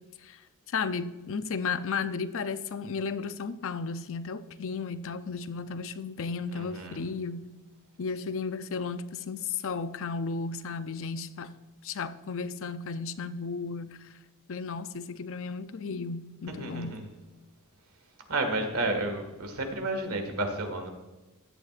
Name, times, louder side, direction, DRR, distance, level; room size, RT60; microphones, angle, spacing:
voice 1, 0.7-7.4 8.0-11.5 11.8-14.1 14.5-17.0, left 5 dB, 60° left, 0.6 m, -34 dB
voice 2, 6.5-7.0 16.5-17.0 18.3-20.9, right 2 dB, 75° right, 1.8 m, -31 dB
15.5 x 10.5 x 2.5 m
head